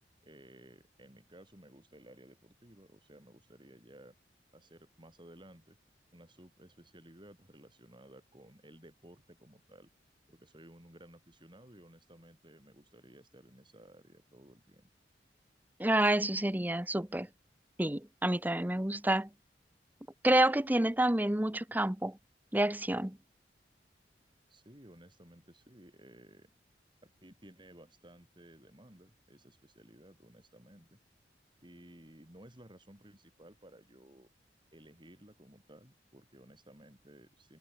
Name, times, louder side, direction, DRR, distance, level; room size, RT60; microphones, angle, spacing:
voice 1, 0.2-4.1 4.5-5.8 6.1-9.9 10.3-14.9 24.5-26.5 27.0-31.0 31.6-34.3 34.7-37.6, right 1 dB, 25° right, 5.7 m, -56 dB
voice 2, 15.8-17.3 17.8-19.3 20.2-22.2 22.5-23.2, right 1 dB, 10° right, 0.9 m, -28 dB
head